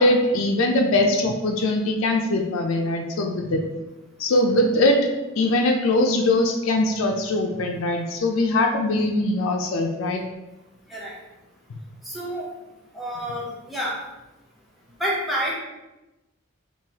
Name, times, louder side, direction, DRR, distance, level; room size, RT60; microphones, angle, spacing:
voice 1, 0.0-3.6 4.2-5.1 5.4-10.2, left 1 dB, 80° left, 2 dB, 0.4 m, -21 dB
voice 2, 12.0-12.5 12.9-14.0 15.0-15.5, equal, ahead, -6 dB, 0.8 m, -28 dB
3.8 x 2.5 x 2.7 m, 1.0 s
head